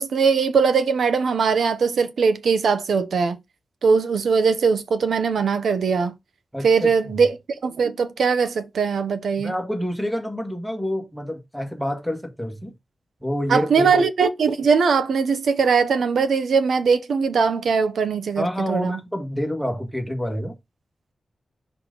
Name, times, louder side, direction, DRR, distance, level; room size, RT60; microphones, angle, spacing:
voice 1, 0.0-3.4 3.8-6.1 6.6-7.4 7.6-9.5 13.5-19.0, right 5 dB, 90° right, 0.8 m, -20 dB
voice 2, 6.5-6.9 9.4-12.7 13.2-13.9 18.4-20.5, equal, ahead, 1.7 m, -27 dB
6.0 x 3.9 x 4.0 m
wide cardioid pair, 150°, 0 cm